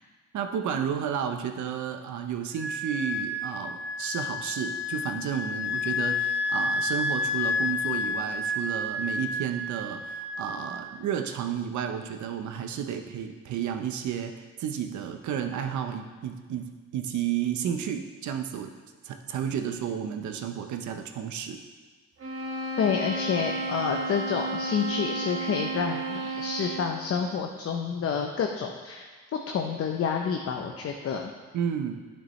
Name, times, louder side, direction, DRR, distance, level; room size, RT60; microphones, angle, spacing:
voice 1, 0.3-18.7 19.0-21.6 31.5-31.9, right 8 dB, 70° right, 6 dB, 0.8 m, -32 dB
Wind instrument woodwind instrument, 2.6-10.9, left 3 dB, 5° right, 0.7 m, -30 dB
sound 1, 22.2-27.1, right 2 dB, 45° right, 1.4 m, -33 dB
voice 2, 22.8-29.1 29.5-31.3, left 6 dB, 50° left, 3 dB, 0.7 m, -29 dB
9.1 x 6.6 x 3.2 m, 1.4 s
cardioid pair, 90°, 30 cm